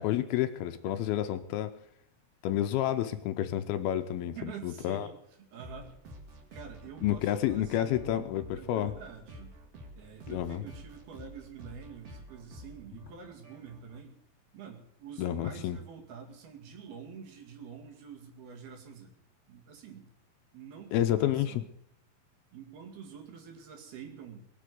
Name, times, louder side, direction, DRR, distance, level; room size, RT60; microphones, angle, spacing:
voice 1, 0.0-1.7 2.4-5.1 7.0-8.9 10.3-10.6 15.2-15.8 20.9-21.6, left 12 dB, 75° left, 9 dB, 2.4 m, -30 dB
voice 2, 4.2-5.2 5.5-5.9 6.5-9.6 9.9-14.2 14.5-19.1 19.5-20.1 20.5-21.6 22.5-24.4, right 7 dB, 70° right, 2 dB, 4.2 m, -47 dB
sound 1, 5.6-14.0, equal, 45° right, 2.9 m, -50 dB
22.0 x 7.7 x 8.0 m, 0.71 s
omnidirectional pair, 4.8 m